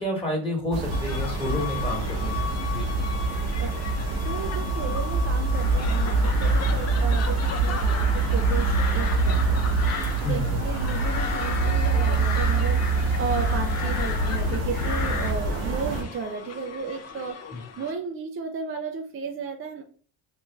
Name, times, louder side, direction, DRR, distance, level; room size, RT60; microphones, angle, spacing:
voice 1, 0.0-2.9 10.2-10.5 17.5-17.6, left 1 dB, 10° left, -1 dB, 1.2 m, -30 dB
sound 1, 0.7-16.0, right 3 dB, 75° right, 1.0 m, -25 dB
sound 2, 0.9-17.9, left 6 dB, 35° left, 0.5 m, -38 dB
voice 2, 4.2-9.8 10.2-17.4 17.8-19.8, right 5 dB, 30° right, 4 dB, 0.4 m, -34 dB
sound 3, 5.5-15.3, left 3 dB, 80° left, 1.1 m, -32 dB
3.2 x 2.5 x 3.3 m, 0.43 s
supercardioid pair, 85°, 48 cm